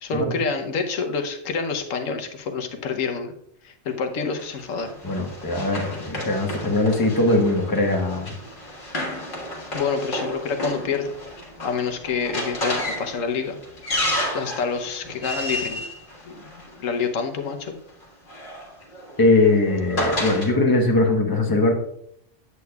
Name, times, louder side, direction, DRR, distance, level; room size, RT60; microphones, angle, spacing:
voice 1, 0.0-3.3 3.6-4.9 9.7-11.1 11.6-13.6 14.3-15.8 16.3-17.7, left 5 dB, 90° left, 6 dB, 1.2 m, -27 dB
Run, 4.4-17.0 18.0-20.5, left 1 dB, 45° left, 1.5 m, -31 dB
voice 2, 5.0-8.4 19.2-21.7, left 2 dB, 20° left, 2 dB, 1.0 m, -20 dB
8.3 x 8.2 x 2.3 m, 0.70 s
omnidirectional pair, 1.3 m